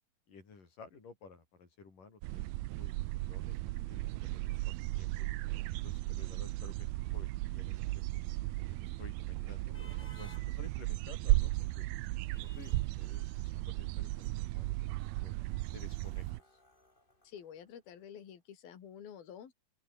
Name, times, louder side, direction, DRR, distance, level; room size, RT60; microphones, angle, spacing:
voice 1, 0.3-2.4 2.8-5.3 5.8-8.2 8.7-11.9 12.4-15.4 15.7-16.6, left 4 dB, 60° left, 6.8 m, -55 dB
sound 1, 2.2-16.4, right 20 dB, 85° right, 2.5 m, -35 dB
sound 2, 7.6-18.0, left 1 dB, 15° left, 5.2 m, -63 dB
voice 2, 17.2-19.5, left 8 dB, 75° left, 4.7 m, -49 dB
open air
omnidirectional pair, 4.3 m